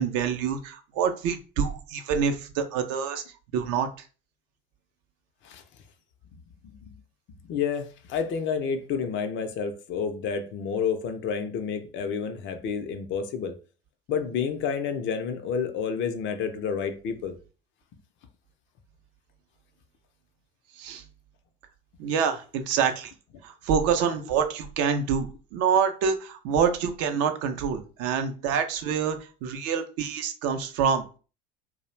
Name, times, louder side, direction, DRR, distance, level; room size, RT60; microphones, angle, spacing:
voice 1, 0.0-3.2 3.5-4.1 20.7-21.0 22.0-23.1 23.4-31.0, right 7 dB, 55° right, 0.5 m, -26 dB
voice 2, 7.4-13.6 14.1-17.4, left 6 dB, 40° left, 0.5 m, -29 dB
2.3 x 2.0 x 3.1 m
hypercardioid pair, 70°, 30 cm